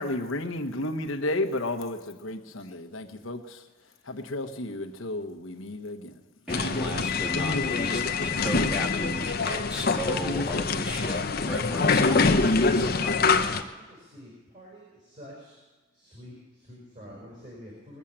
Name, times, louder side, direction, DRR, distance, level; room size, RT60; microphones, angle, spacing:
voice 1, 0.0-3.6 4.0-6.2, left 1 dB, 75° left, 5 dB, 1.2 m, -32 dB
sound 1, 6.5-13.6, left 4 dB, 50° left, 0.8 m, -25 dB
voice 2, 6.5-13.2, equal, 5° right, -3 dB, 1.5 m, -36 dB
voice 3, 13.7-15.6 15.9-18.0, equal, 40° right, -3 dB, 4.8 m, -47 dB
21.0 x 7.4 x 8.8 m, 1.2 s
head